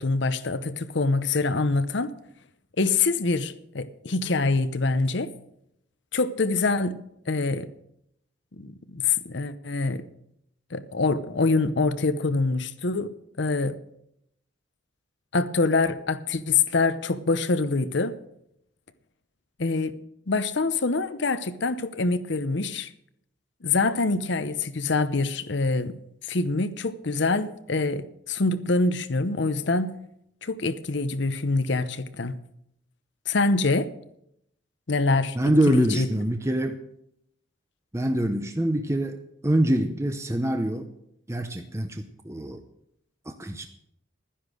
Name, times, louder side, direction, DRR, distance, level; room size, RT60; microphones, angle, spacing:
voice 1, 0.0-2.1 2.8-5.3 6.1-7.0 7.3-7.7 8.6-10.1 10.7-13.8 15.3-18.2 19.6-19.9 20.3-22.9 23.6-25.9 26.3-29.9 30.4-32.4 33.3-33.9 34.9-35.4 35.7-36.1, left 3 dB, 65° left, 12 dB, 0.8 m, -25 dB
voice 2, 35.3-36.8 37.9-40.9 41.3-42.6 43.3-43.7, right 1 dB, 15° right, 7 dB, 0.7 m, -25 dB
12.5 x 10.0 x 6.3 m, 0.76 s
head